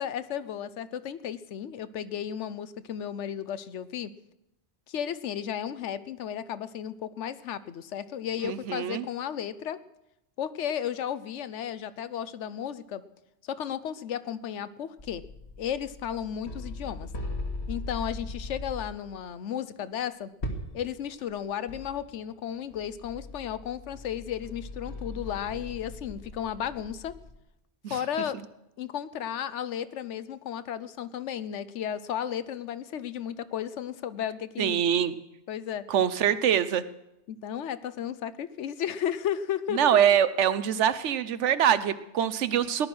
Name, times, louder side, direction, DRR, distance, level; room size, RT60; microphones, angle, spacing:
voice 1, 0.0-4.1 4.9-9.8 10.4-13.0 13.4-15.2 15.6-17.1 17.7-20.3 20.7-27.1 27.9-28.4 28.8-35.0 35.5-35.8 37.3-40.0, left 9 dB, 85° left, 15 dB, 1.0 m, -34 dB
voice 2, 8.4-9.1 27.8-27.9 34.6-35.1 35.9-36.8 39.7-42.9, right 9 dB, 90° right, 14 dB, 1.1 m, -24 dB
sound 1, 15.0-19.1 20.4-20.9 21.3-21.4 21.7-22.2 22.7-27.3, left 2 dB, 65° left, 2.1 m, -39 dB
18.0 x 11.5 x 6.1 m, 0.89 s
omnidirectional pair, 1.2 m